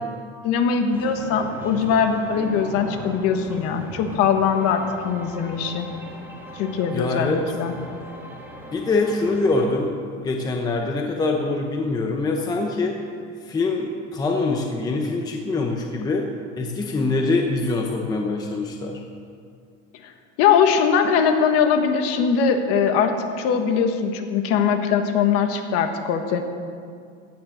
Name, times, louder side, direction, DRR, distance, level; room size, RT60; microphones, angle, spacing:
voice 1, 0.4-5.9 6.5-7.7 20.4-26.4, left 6 dB, 45° left, 6 dB, 1.4 m, -21 dB
sound 1, 0.9-9.7, equal, 5° right, 1.4 m, -39 dB
voice 2, 6.9-7.4 8.7-9.9 10.2-13.0 13.5-16.3 16.6-19.0, left 3 dB, 10° left, 2 dB, 0.7 m, -24 dB
16.0 x 10.0 x 6.4 m, 2.3 s
cardioid pair, 170°, 33 cm